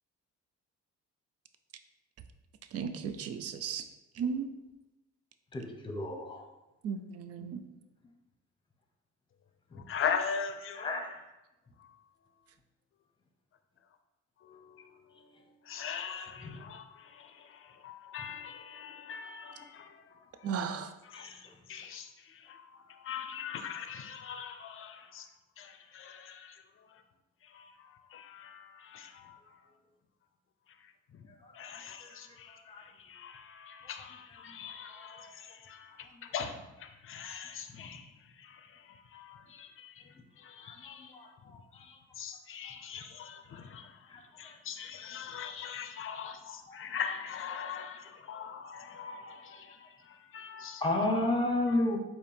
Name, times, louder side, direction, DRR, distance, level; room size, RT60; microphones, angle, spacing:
voice 1, 2.7-3.8 4.2-4.5 6.8-7.6 20.4-20.9, right 6 dB, 55° right, 9 dB, 0.4 m, -35 dB
voice 2, 5.5-6.4 7.4-7.5 10.7-11.2 21.1-21.3 32.7-32.8 37.8-37.9 40.6-41.3 46.7-46.8 50.8-52.0, left 2 dB, 15° left, 1 dB, 0.8 m, -31 dB
voice 3, 9.9-10.9 15.7-16.8 17.8-19.9 21.1-21.3 21.7-22.1 22.5-22.6 23.0-25.2 25.6-26.5 28.1-29.1 31.6-32.5 33.1-35.3 35.7-35.9 36.3-36.6 37.1-38.0 39.1-39.7 40.4-41.1 42.2-43.8 44.4-49.7 50.3-50.8, left 7 dB, 45° left, 7 dB, 0.5 m, -40 dB
4.3 x 2.8 x 3.4 m, 0.99 s
cardioid pair, 90°, 30 cm